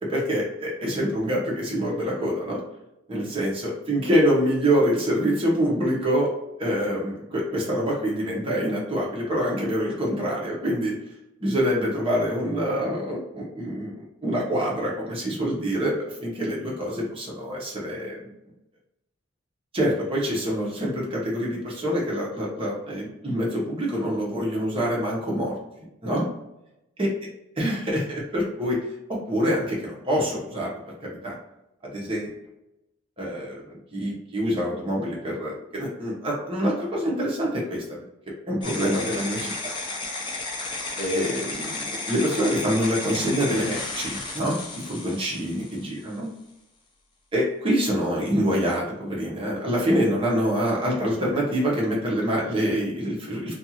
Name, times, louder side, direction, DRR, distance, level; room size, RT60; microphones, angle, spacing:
voice 1, 0.0-2.6 3.1-6.3 6.6-11.0 11.4-13.9 14.2-18.3 19.7-25.6 26.0-26.2 27.0-27.1 27.6-28.8 29.1-30.7 31.0-31.3 31.8-32.3 33.2-38.0 38.5-39.5 41.0-44.6 44.8-46.3 47.3-53.6, equal, 25° right, -4 dB, 0.8 m, -26 dB
sound 1, 38.6-46.1, left 3 dB, 25° left, 0.4 m, -33 dB
2.5 x 2.4 x 2.8 m, 0.88 s
head